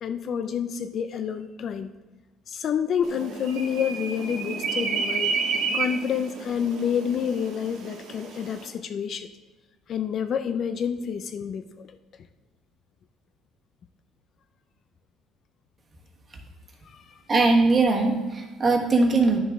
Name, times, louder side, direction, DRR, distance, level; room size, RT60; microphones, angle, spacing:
voice 1, 0.0-1.9 2.5-5.3 5.7-9.3 9.9-11.9 16.9-17.0, left 7 dB, 45° left, 10 dB, 0.4 m, -28 dB
sound 1, 3.0-8.7, right 5 dB, 70° right, 1.5 m, -31 dB
voice 2, 17.3-19.4, right 3 dB, 30° right, 2 dB, 1.4 m, -20 dB
10.5 x 7.0 x 3.6 m, 1.2 s
cardioid pair, 140°, 0 cm